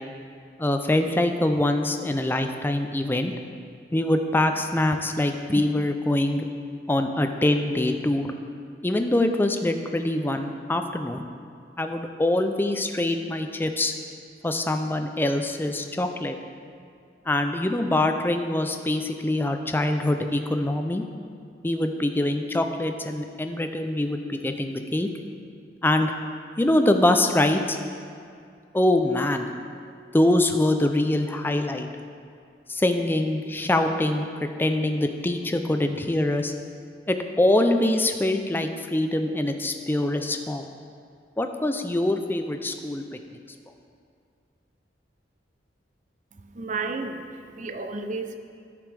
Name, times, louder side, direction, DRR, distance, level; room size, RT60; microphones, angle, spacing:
voice 1, 0.6-3.3 3.9-6.5 6.9-8.3 8.8-11.2 11.8-13.9 14.4-16.4 17.3-21.0 21.6-25.1 25.8-26.1 26.6-27.8 28.7-29.5 30.1-31.9 32.7-36.5 37.1-40.7 41.4-43.0, left 1 dB, 10° left, 6 dB, 0.4 m, -24 dB
voice 2, 46.3-48.4, right 3 dB, 45° right, 6 dB, 0.5 m, -32 dB
13.5 x 5.1 x 3.4 m, 2.3 s
head